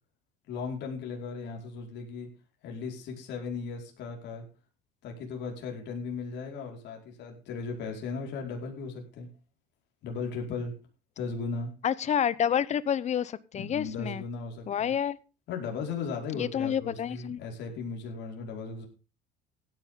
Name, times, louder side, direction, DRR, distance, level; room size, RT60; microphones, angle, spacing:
voice 1, 0.5-2.3 2.6-4.4 5.0-9.3 10.0-10.7 11.2-11.7 13.5-14.9 15.5-18.9, left 4 dB, 55° left, 1 dB, 5.1 m, -36 dB
voice 2, 11.8-14.2 14.7-15.2 16.3-17.4, left 9 dB, 35° left, 18 dB, 0.9 m, -29 dB
16.5 x 10.5 x 3.8 m, 0.32 s
cardioid pair, 130°, 21 cm